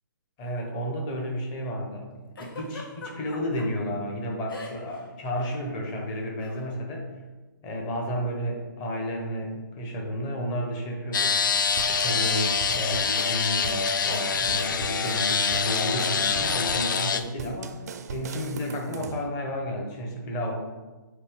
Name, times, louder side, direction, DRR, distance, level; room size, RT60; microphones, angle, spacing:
voice 1, 0.4-2.1 2.4-7.1 7.6-17.7 18.1-20.5, equal, 20° left, 0 dB, 1.0 m, -32 dB
Giggle, 2.4-3.7 4.5-5.0 5.3-5.5 6.4-6.6, left 3 dB, 90° left, 1.6 m, -40 dB
sound 1, 11.1-17.2, left 6 dB, 65° left, 0.5 m, -25 dB
sound 2, 11.8-19.3, right 6 dB, 50° right, 0.5 m, -39 dB
8.2 x 2.8 x 5.1 m, 1.2 s
hypercardioid pair, 165°, 11 cm